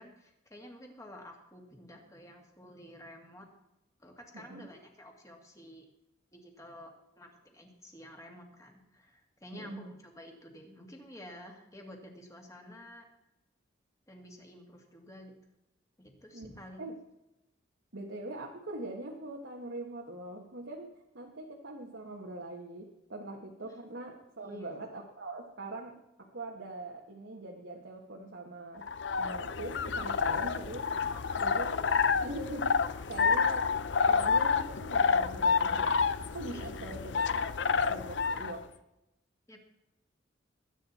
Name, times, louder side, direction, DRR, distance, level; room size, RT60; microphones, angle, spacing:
voice 1, 0.0-3.5 4.0-5.9 6.3-13.1 14.1-15.3 16.0-16.9 23.6-23.7 24.4-24.7 31.0-31.5 36.5-37.0 37.3-37.5 39.5-39.6, left 1 dB, 15° left, 2 dB, 2.2 m, -51 dB
voice 2, 4.3-4.7 9.5-9.9 16.3-16.5 16.8-17.0 17.9-28.9 29.2-30.9 31.4-31.9 32.2-33.7 34.1-36.0 36.3-38.8, right 1 dB, 70° right, 0 dB, 1.5 m, -42 dB
sound 1, 28.8-38.6, left 5 dB, 65° left, 0.6 m, -29 dB
20.5 x 9.0 x 4.3 m, 0.91 s
head